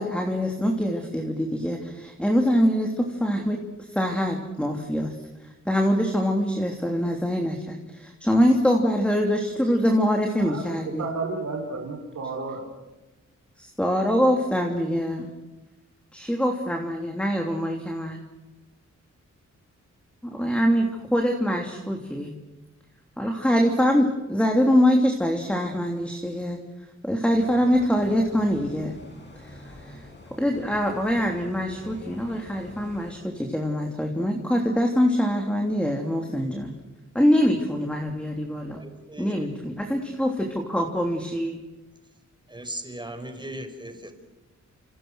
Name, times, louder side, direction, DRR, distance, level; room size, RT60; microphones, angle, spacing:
voice 1, 0.0-3.6 3.9-5.1 5.4-11.0 13.6-15.3 16.1-18.2 20.2-22.3 23.2-26.6 27.0-29.0 29.4-30.0 30.4-36.7 37.1-38.8 39.2-41.6, equal, 5° left, 2 dB, 3.1 m, -24 dB
voice 2, 10.4-12.6, right 3 dB, 70° right, 1 dB, 4.5 m, -32 dB
sound 1, 27.3-33.1, left 1 dB, 40° left, 7.9 m, -46 dB
voice 3, 38.7-39.5 42.5-44.1, right 1 dB, 15° right, 7 dB, 5.2 m, -38 dB
29.0 x 28.0 x 6.4 m, 1.1 s
wide cardioid pair, 100°, 29 cm